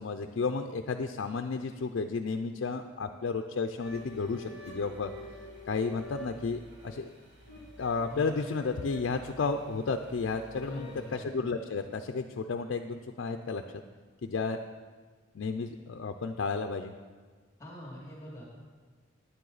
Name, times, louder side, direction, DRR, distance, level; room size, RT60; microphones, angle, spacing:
voice 1, 0.0-5.1 5.7-7.1 7.8-13.6 14.2-14.6 15.3-16.9, left 4 dB, 65° left, 6 dB, 0.4 m, -32 dB
sound 1, 3.8-11.1, left 2 dB, 65° right, 2.2 m, -47 dB
voice 2, 10.6-11.2 17.6-18.4, left 1 dB, 15° left, -5 dB, 2.4 m, -43 dB
9.9 x 9.4 x 4.0 m, 1.5 s
head